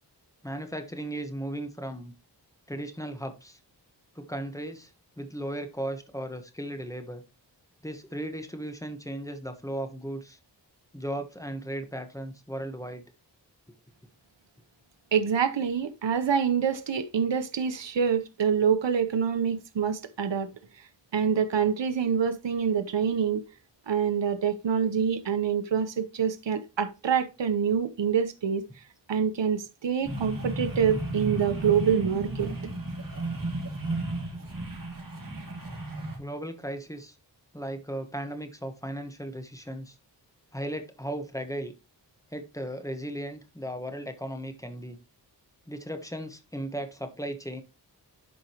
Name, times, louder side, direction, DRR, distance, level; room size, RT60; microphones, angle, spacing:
voice 1, 0.4-2.1 2.7-3.6 4.1-4.9 5.2-7.2 7.8-10.4 10.9-13.0 36.2-37.1 37.5-39.9 40.5-41.7 42.3-45.0 45.7-47.6, right 1 dB, 5° left, 1.2 m, -36 dB
voice 2, 15.1-20.5 21.1-23.4 23.9-28.6 29.1-32.5, right 7 dB, 80° right, 0.9 m, -26 dB
sound 1, 30.0-36.2, right 2 dB, 50° right, 3.3 m, -34 dB
11.0 x 5.1 x 3.0 m
wide cardioid pair, 90°, 43 cm